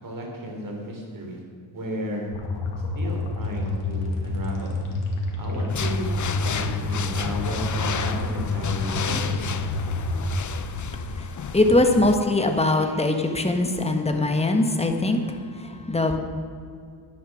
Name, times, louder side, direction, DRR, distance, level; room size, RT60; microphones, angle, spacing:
voice 1, 0.0-1.4 1.7-2.3 2.9-4.8 5.4-6.4 6.8-9.7, equal, 40° right, 0 dB, 3.8 m, -34 dB
sound 1, 2.3-10.3, left 2 dB, 75° left, 2.4 m, -28 dB
sound 2, 5.7-12.2, left 7 dB, 35° left, 0.7 m, -32 dB
voice 2, 11.1-16.2, left 2 dB, 10° left, 4 dB, 1.3 m, -22 dB
11.0 x 10.0 x 6.3 m, 2.2 s
cardioid pair, 115°, 49 cm